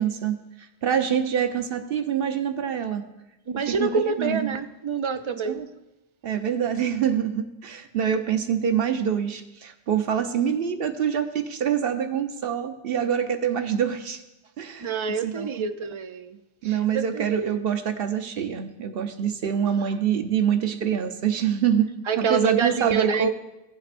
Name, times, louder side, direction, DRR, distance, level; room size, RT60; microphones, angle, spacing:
voice 1, 0.0-3.0 3.5-3.9 4.2-4.5 5.4-5.7 6.2-14.2 14.6-14.9 15.2-15.5 16.6-21.9 22.2-23.3, right 8 dB, 70° right, 7 dB, 0.9 m, -25 dB
voice 2, 3.5-5.6 14.8-16.4 16.6-17.6 19.4-19.9 22.1-23.3, right 5 dB, 50° right, 10 dB, 0.3 m, -27 dB
17.5 x 7.6 x 2.5 m, 0.95 s
omnidirectional pair, 1.1 m